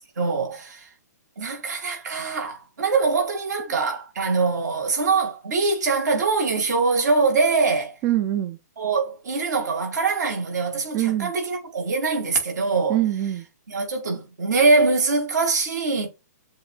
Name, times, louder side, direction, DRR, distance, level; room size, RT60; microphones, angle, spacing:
voice 1, 0.2-0.9 1.4-8.0 8.8-13.0 13.7-16.1, right 4 dB, 70° right, 2.1 m, -23 dB
voice 2, 8.0-8.6 10.9-11.3 12.9-13.5, right 13 dB, 25° right, 0.4 m, -23 dB
7.2 x 2.6 x 2.4 m
hypercardioid pair, 150°, 10 cm